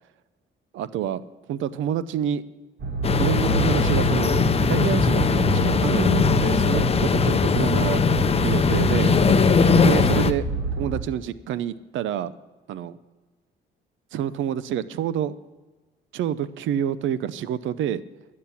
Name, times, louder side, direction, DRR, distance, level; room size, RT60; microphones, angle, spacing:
voice 1, 0.7-1.2 1.5-2.4 3.2-4.4 4.7-8.0 8.4-9.1 9.8-10.4 10.8-12.3 12.7-13.0 14.1-15.4 16.1-18.0, right 10 dB, 80° right, 16 dB, 0.6 m, -28 dB
sound 1, 2.8-11.0, right 3 dB, 55° right, 1.9 m, -27 dB
sound 2, 3.0-10.3, left 5 dB, 30° left, 0.7 m, -20 dB
12.0 x 8.6 x 7.1 m, 1.2 s
cardioid pair, 90°, 20 cm